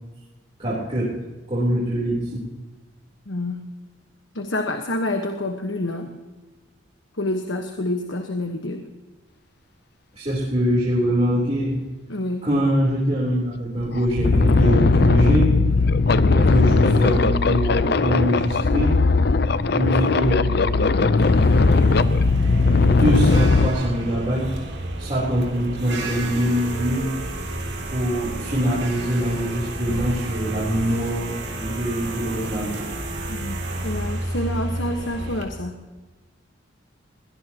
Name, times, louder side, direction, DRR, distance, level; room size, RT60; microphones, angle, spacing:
voice 1, 0.6-1.2 1.5-2.4 10.2-11.8 12.4-15.5 16.1-19.0 19.7-21.1 22.8-24.5 25.0-27.2 27.9-32.9, equal, 30° right, -7 dB, 3.6 m, -23 dB
voice 2, 3.3-3.7 4.3-6.2 7.2-8.9 12.1-12.5 33.3-35.8, left 1 dB, 70° left, 4 dB, 1.3 m, -28 dB
sound 1, 13.3-13.4 13.8-23.7, left 3 dB, 55° left, 0.6 m, -18 dB
sound 2, 21.2-35.4, right 1 dB, 55° right, 2.8 m, -31 dB
22.5 x 18.5 x 3.0 m, 1.2 s
head